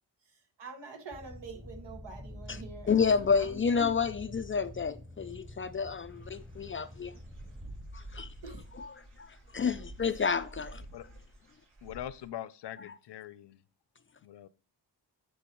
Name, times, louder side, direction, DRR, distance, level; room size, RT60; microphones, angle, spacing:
voice 1, 0.6-3.9 8.4-8.6 10.1-10.2, right 3 dB, 75° right, 1.8 m, -46 dB
sound 1, 1.1-7.7, left 1 dB, 10° right, 1.1 m, -47 dB
voice 2, 2.9-7.1 7.9-8.3 8.8-8.9 9.2-10.8, left 5 dB, 30° left, 0.4 m, -30 dB
Dog / Bird, 6.0-12.3, right 1 dB, 60° right, 3.9 m, -49 dB
voice 3, 11.8-13.6 14.2-14.5, left 12 dB, 70° left, 0.6 m, -42 dB
11.0 x 4.7 x 3.0 m
cardioid pair, 65°, 42 cm